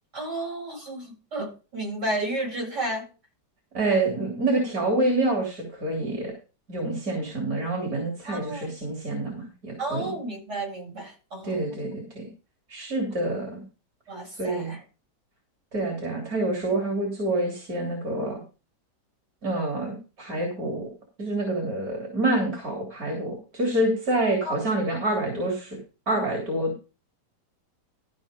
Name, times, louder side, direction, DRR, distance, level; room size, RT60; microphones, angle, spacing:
voice 1, 0.1-3.0 8.3-8.7 9.8-11.7 14.1-14.8 24.4-24.5, right 1 dB, 85° right, -3 dB, 8.9 m, -32 dB
voice 2, 3.7-6.3 6.7-10.1 11.4-12.3 12.7-13.6 14.4-14.7 15.7-18.4 19.4-20.9 21.2-25.8 26.1-26.7, right 2 dB, 60° right, 0 dB, 3.8 m, -27 dB
14.5 x 6.0 x 5.2 m, 0.33 s
omnidirectional pair, 1.8 m